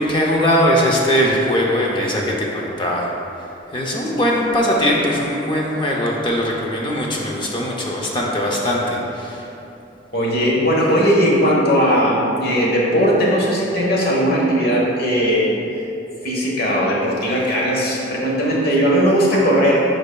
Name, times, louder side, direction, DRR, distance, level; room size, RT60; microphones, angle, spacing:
voice 1, 0.0-3.1 3.7-9.4, equal, 25° left, -2 dB, 0.6 m, -20 dB
voice 2, 10.1-15.5 16.2-19.8, equal, 50° left, -4 dB, 1.2 m, -18 dB
8.3 x 5.2 x 2.3 m, 2.9 s
head